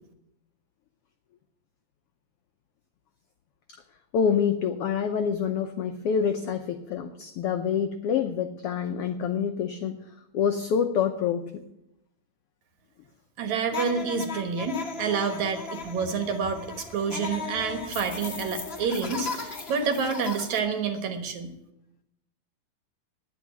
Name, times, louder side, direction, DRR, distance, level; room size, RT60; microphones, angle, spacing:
voice 1, 4.1-10.0 10.3-11.6, left 7 dB, 90° left, 7 dB, 1.2 m, -27 dB
voice 2, 13.4-21.5, right 5 dB, 70° right, 6 dB, 2.6 m, -28 dB
sound 1, 13.7-20.6, left 4 dB, 70° left, 0.5 m, -37 dB
10.5 x 8.5 x 9.6 m, 0.84 s
omnidirectional pair, 3.6 m